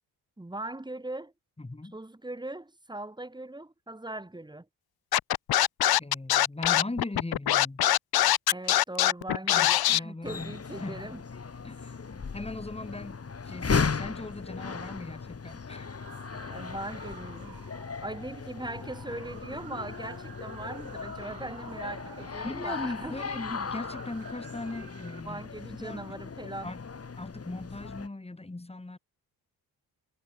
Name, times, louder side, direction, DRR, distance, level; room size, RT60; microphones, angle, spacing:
voice 1, 0.4-1.3 1.9-4.7 8.5-11.2 16.4-23.2 25.2-26.7, right 2 dB, 10° right, 2.8 m, -40 dB
voice 2, 1.6-2.0 6.0-7.9 9.4-11.2 11.6-16.0 22.4-25.4 25.8-26.2 26.6-26.8 27.2-29.0, left 2 dB, 15° left, 3.2 m, -39 dB
Scratching (performance technique), 5.1-10.0, left 13 dB, 65° left, 0.9 m, -23 dB
sound 1, 10.2-28.1, left 5 dB, 35° left, 3.2 m, -37 dB
sound 2, 16.0-25.2, right 11 dB, 75° right, 3.5 m, -51 dB
cardioid pair, 70°, 40 cm